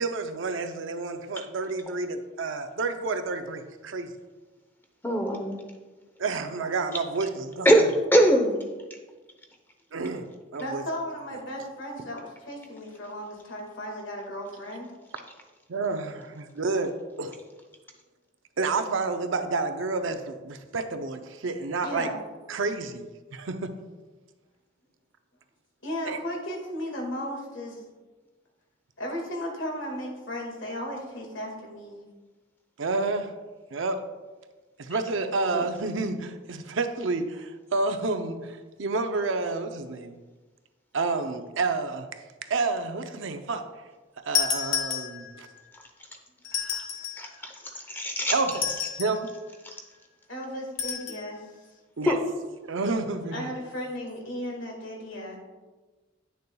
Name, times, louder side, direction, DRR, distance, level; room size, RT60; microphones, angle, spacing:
voice 1, 0.0-4.1 6.2-7.7 9.9-10.3 10.5-10.8 15.7-17.4 18.6-22.1 22.5-23.8 26.0-26.2 32.8-33.3 33.7-34.0 34.8-40.1 40.9-42.1 42.4-43.7 44.2-45.5 46.5-46.9 47.2-47.5 48.3-48.7 49.0-49.3 52.0-52.2 52.6-53.5, right 3 dB, 70° right, 7 dB, 0.6 m, -30 dB
voice 2, 5.0-5.6 7.6-7.8 8.1-8.6 35.5-35.6 47.2-48.4 52.1-52.2, right 1 dB, 10° left, 3 dB, 0.7 m, -22 dB
voice 3, 10.6-14.9 21.8-22.2 25.8-27.8 29.0-32.0 50.3-51.6 53.3-55.4, equal, 65° left, 0 dB, 1.9 m, -35 dB
sound 1, 44.3-45.5 46.4-47.3 48.5-49.3 50.8-51.2, left 8 dB, 85° left, 1.1 m, -30 dB
9.9 x 6.7 x 2.3 m, 1.2 s
head